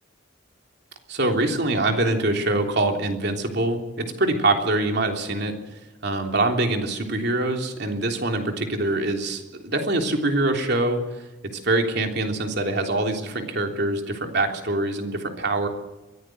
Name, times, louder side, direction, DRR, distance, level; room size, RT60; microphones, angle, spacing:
voice 1, 1.1-5.5 6.0-11.2 11.6-15.7, right 2 dB, 60° right, 3 dB, 3.4 m, -24 dB
23.0 x 15.5 x 7.8 m, 1.1 s
head